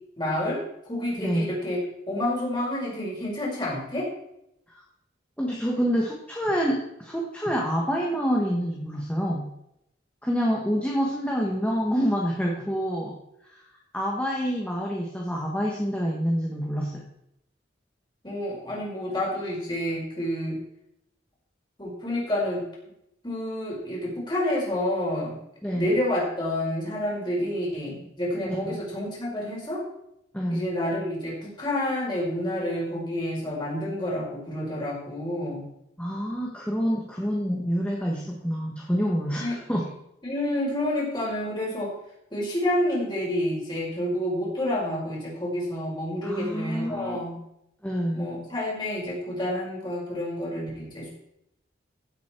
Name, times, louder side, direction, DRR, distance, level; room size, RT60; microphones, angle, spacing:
voice 1, 0.2-1.8 2.1-4.1 18.2-20.6 21.8-22.6 23.2-25.4 25.7-29.8 30.5-35.7 39.4-39.6 40.2-41.9 42.3-47.3 48.1-51.1, left 1 dB, 25° left, -5 dB, 5.3 m, -29 dB
voice 2, 1.2-1.5 4.7-4.8 5.4-9.5 10.2-13.2 13.4-13.6 13.9-17.0 25.6-25.9 28.5-28.8 30.3-30.7 36.0-39.9 46.2-47.2 47.8-48.3, equal, 5° left, -2 dB, 1.5 m, -27 dB
16.0 x 8.2 x 4.6 m, 0.80 s
head